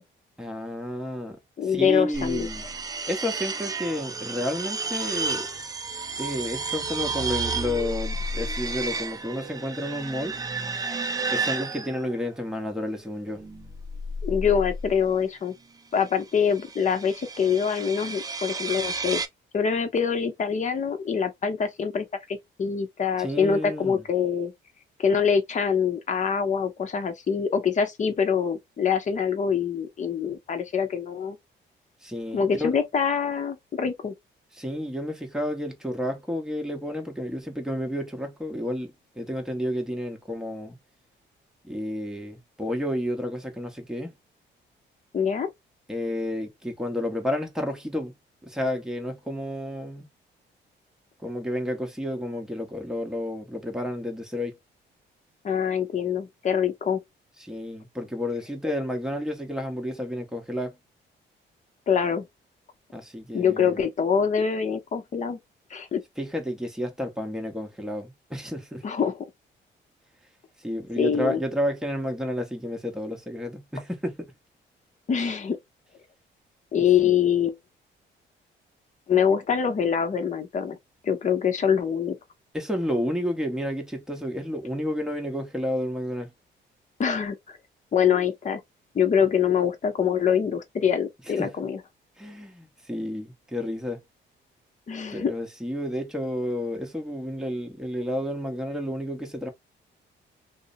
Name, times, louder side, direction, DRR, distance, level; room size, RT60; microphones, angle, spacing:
voice 1, 0.4-1.4 1.7-2.6 3.1-5.5 6.2-10.3 11.3-13.4 23.2-24.0 32.0-32.7 34.6-40.8 41.6-44.1 45.9-48.1 48.4-50.1 51.2-54.5 57.4-60.7 62.9-63.8 66.2-68.8 70.6-74.3 76.7-77.1 82.5-86.3 91.4-91.5 92.2-94.0 95.1-99.5, left 1 dB, 5° right, 0.9 m, -31 dB
voice 2, 1.6-2.5 14.2-15.5 15.9-19.2 19.5-24.5 25.0-31.4 32.3-34.1 45.1-45.5 55.4-57.0 61.9-62.3 63.3-65.4 65.7-66.0 68.8-69.2 71.0-71.4 75.1-75.6 76.7-77.6 79.1-80.8 81.0-82.2 87.0-87.6 87.9-88.6 88.9-91.8 94.9-95.3, left 7 dB, 40° left, 0.7 m, -24 dB
sound 1, 2.1-12.3 13.3-15.1 16.3-19.3, right 3 dB, 20° right, 0.4 m, -32 dB
2.7 x 2.0 x 2.6 m
cardioid pair, 90°, 20 cm